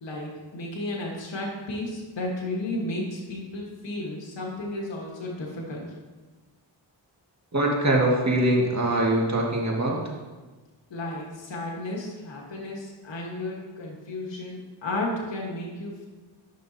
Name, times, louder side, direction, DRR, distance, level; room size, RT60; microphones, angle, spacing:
voice 1, 0.0-5.9 10.9-16.1, left 1 dB, 65° left, -2 dB, 1.7 m, -33 dB
voice 2, 7.5-10.0, right 1 dB, 35° right, -2 dB, 2.0 m, -23 dB
11.0 x 5.9 x 2.9 m, 1.2 s
cardioid pair, 45°, 47 cm